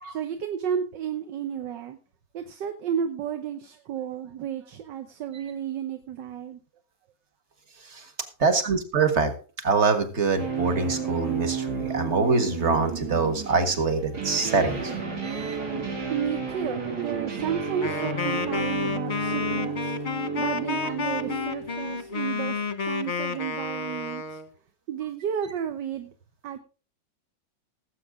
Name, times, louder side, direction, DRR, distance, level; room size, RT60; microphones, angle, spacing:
voice 1, 0.1-2.0 2.3-6.6 16.1-19.9 20.3-22.6 22.8-24.4 24.9-26.1 26.4-26.6, right 8 dB, 75° right, 7 dB, 1.7 m, -32 dB
voice 2, 8.4-9.3 9.6-14.9 15.2-15.6, right 4 dB, 40° right, 7 dB, 1.9 m, -24 dB
sound 1, 10.4-22.3, right 5 dB, 60° right, 3.1 m, -32 dB
Wind instrument woodwind instrument, 17.8-24.5, left 4 dB, 30° left, 1.0 m, -30 dB
18.5 x 8.1 x 3.6 m, 0.35 s
omnidirectional pair, 2.0 m